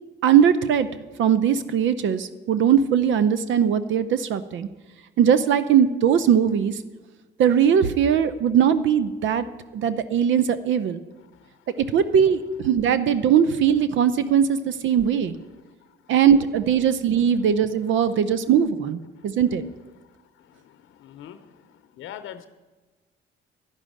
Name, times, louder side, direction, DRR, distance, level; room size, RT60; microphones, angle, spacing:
voice 1, 0.2-0.9 1.2-4.7 5.2-6.8 7.4-9.4 9.7-11.0 11.9-15.4 16.1-19.0 19.2-19.6, right 8 dB, 75° right, 13 dB, 0.7 m, -20 dB
voice 2, 20.6-21.5 22.0-22.5, left 10 dB, 80° left, 10 dB, 0.7 m, -41 dB
11.5 x 6.2 x 8.9 m, 1.2 s
cardioid pair, 90°, 20 cm